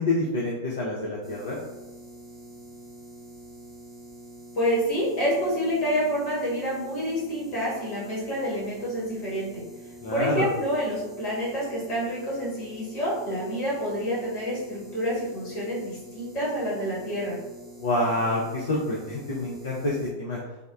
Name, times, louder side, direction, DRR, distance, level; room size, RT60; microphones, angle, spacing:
voice 1, 0.0-1.6 10.0-10.5 17.8-20.4, left 2 dB, 60° left, -4 dB, 0.4 m, -27 dB
sound 1, 1.2-20.1, right 1 dB, 15° right, 0.6 m, -46 dB
voice 2, 4.5-9.6 10.1-17.4, equal, 40° left, -6 dB, 1.2 m, -28 dB
3.4 x 2.0 x 2.2 m, 1.1 s
figure-of-eight pair, 90°, 0 cm